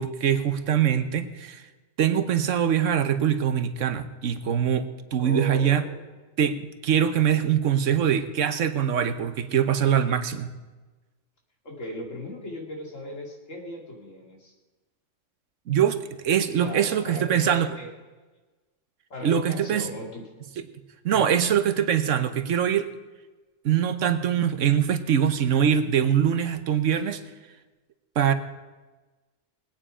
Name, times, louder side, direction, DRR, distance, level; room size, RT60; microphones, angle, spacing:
voice 1, 0.0-1.6 2.0-4.8 5.1-5.8 6.4-10.5 15.7-17.7 19.2-19.9 21.0-22.9 23.6-27.2 28.2-28.3, right 9 dB, 80° right, 10 dB, 1.2 m, -23 dB
voice 2, 5.2-6.1 11.6-14.5 16.6-17.9 19.1-20.3 21.1-21.4, equal, 85° left, 0 dB, 2.7 m, -37 dB
20.0 x 9.1 x 5.0 m, 1.2 s
omnidirectional pair, 1.3 m